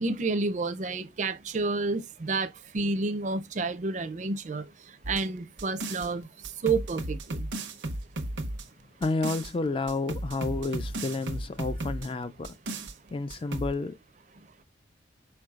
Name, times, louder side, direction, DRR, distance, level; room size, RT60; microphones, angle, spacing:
voice 1, 0.0-2.5 2.7-4.6 5.1-6.3 6.6-7.4, right 3 dB, 40° right, 0.5 m, -29 dB
sound 1, 5.0-6.1 6.4-9.5 9.9-12.1 12.4-12.9 13.3-13.7, right 1 dB, 90° right, 0.8 m, -35 dB
voice 2, 9.0-12.6 13.1-14.0, left 3 dB, 30° left, 0.3 m, -30 dB
4.7 x 4.6 x 2.4 m
head